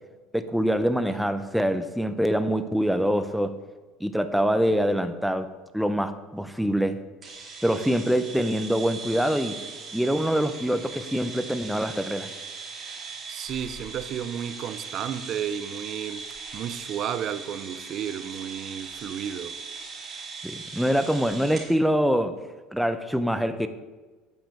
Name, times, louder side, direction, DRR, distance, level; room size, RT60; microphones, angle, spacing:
voice 1, 0.3-3.6 4.0-7.0 7.6-9.6 9.9-12.3 20.4-22.4 22.7-23.7, equal, ahead, 0.6 m, -25 dB
sound 1, 7.2-21.7, right 5 dB, 25° right, 2.6 m, -39 dB
voice 2, 13.3-16.3 16.5-19.6, right 9 dB, 45° right, 0.5 m, -32 dB
9.2 x 5.0 x 6.9 m
cardioid pair, 135°, 0 cm